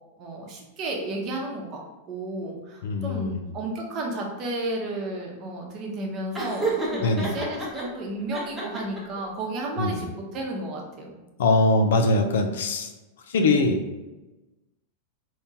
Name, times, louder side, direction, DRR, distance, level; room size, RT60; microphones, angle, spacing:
voice 1, 0.2-1.8 2.1-11.2 13.4-13.7, right 2 dB, 35° right, 0 dB, 0.8 m, -33 dB
voice 2, 2.8-3.4 7.0-7.3 9.8-10.0 11.4-12.9 13.3-13.8, left 2 dB, 80° left, 5 dB, 0.5 m, -22 dB
Laughter, 6.3-7.8 8.3-9.2, right 3 dB, 5° right, 0.9 m, -29 dB
3.5 x 2.8 x 2.8 m, 1.1 s
supercardioid pair, 135°, 0 cm